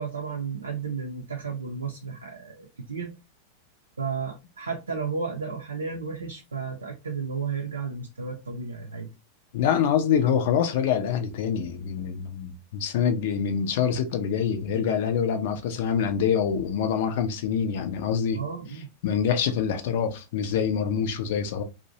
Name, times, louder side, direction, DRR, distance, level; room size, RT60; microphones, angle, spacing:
voice 1, 0.0-3.1 4.0-9.1 18.3-18.9, right 5 dB, 75° right, 0.5 m, -33 dB
voice 2, 9.5-18.4 19.0-21.6, left 7 dB, 50° left, 0.5 m, -25 dB
2.6 x 2.1 x 2.7 m
figure-of-eight pair, 90°, 0 cm